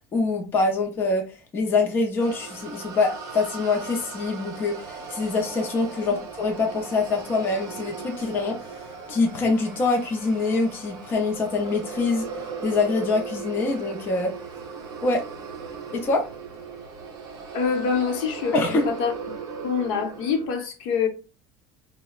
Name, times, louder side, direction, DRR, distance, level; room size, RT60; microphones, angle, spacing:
voice 1, 0.1-1.2 1.5-8.5 9.1-12.2 12.6-14.3 15.0-15.2 15.9-16.3 18.5-19.0, left 3 dB, 20° left, 0.4 m, -24 dB
sound 1, 2.2-20.5, right 5 dB, 35° right, 0.6 m, -38 dB
voice 2, 17.5-19.1 19.6-21.1, left 6 dB, 75° left, 0.8 m, -25 dB
3.9 x 2.0 x 2.3 m
cardioid pair, 175°, 11 cm